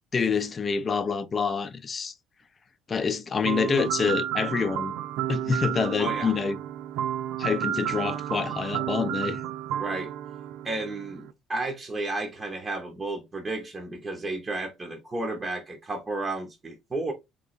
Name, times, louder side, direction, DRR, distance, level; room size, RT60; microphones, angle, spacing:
voice 1, 0.1-2.1 2.9-4.9 5.3-6.6 7.4-9.4, left 5 dB, 25° left, 0.5 m, -27 dB
sound 1, 3.4-11.3, right 11 dB, 80° right, 0.5 m, -31 dB
voice 2, 6.0-6.3 9.8-10.1 10.6-17.1, right 2 dB, 20° right, 0.8 m, -32 dB
3.5 x 3.1 x 3.9 m
cardioid pair, 150°, 0 cm